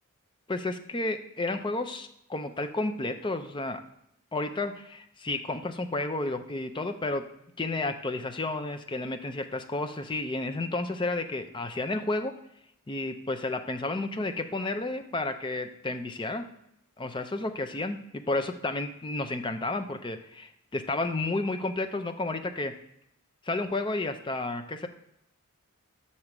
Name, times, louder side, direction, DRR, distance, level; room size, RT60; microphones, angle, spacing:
voice 1, 0.5-3.8 4.3-7.2 7.6-12.3 12.9-16.4 17.0-22.7 23.4-24.9, left 2 dB, 20° left, 7 dB, 0.5 m, -31 dB
6.6 x 4.3 x 5.9 m, 0.76 s
head